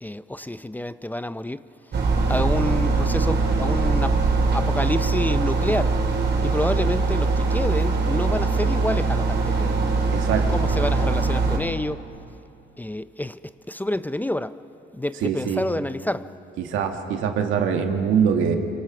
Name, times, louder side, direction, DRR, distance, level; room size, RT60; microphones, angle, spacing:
voice 1, 0.0-1.6 2.3-4.2 4.5-5.9 6.4-9.7 10.5-12.0 12.8-13.4 13.7-14.5 15.0-16.2, left 1 dB, 10° left, 0.5 m, -28 dB
sound 1, 1.9-11.6, right 3 dB, 55° right, 4.3 m, -22 dB
voice 2, 10.1-10.5 15.1-15.7 16.6-18.6, right 7 dB, 90° right, 2.0 m, -23 dB
25.5 x 24.5 x 6.0 m
cardioid pair, 90°, 20 cm